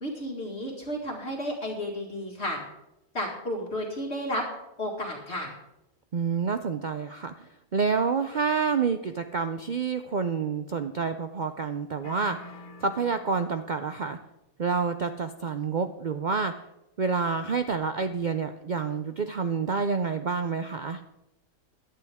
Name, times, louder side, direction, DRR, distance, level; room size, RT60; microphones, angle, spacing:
voice 1, 0.0-2.6 3.1-4.4 4.8-5.5, equal, 50° left, -1 dB, 2.2 m, -32 dB
voice 2, 6.1-12.4 12.8-14.2 14.6-16.5 17.0-21.0, right 5 dB, 60° right, 8 dB, 0.4 m, -28 dB
sound 1, 12.0-14.0, left 2 dB, 65° left, 2.2 m, -46 dB
17.0 x 11.5 x 3.6 m, 0.93 s
omnidirectional pair, 1.5 m